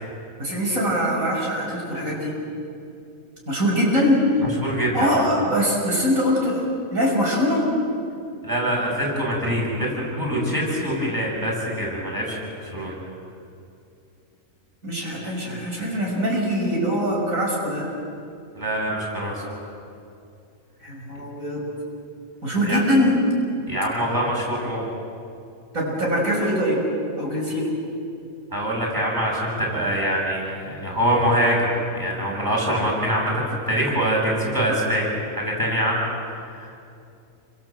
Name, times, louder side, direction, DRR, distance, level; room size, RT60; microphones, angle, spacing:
voice 1, 0.4-2.4 3.5-4.2 4.7-6.6 6.9-7.6 14.8-17.9 20.8-21.7 22.4-23.2 25.7-26.8 27.2-27.8, equal, 80° right, -3 dB, 6.5 m, -23 dB
voice 2, 4.6-5.2 8.4-12.9 18.6-19.4 22.7-22.8 23.7-24.8 28.5-31.6 31.9-36.0 36.6-36.8, equal, 15° right, -3 dB, 8.0 m, -24 dB
29.0 x 26.0 x 7.8 m, 2.6 s
omnidirectional pair, 1.4 m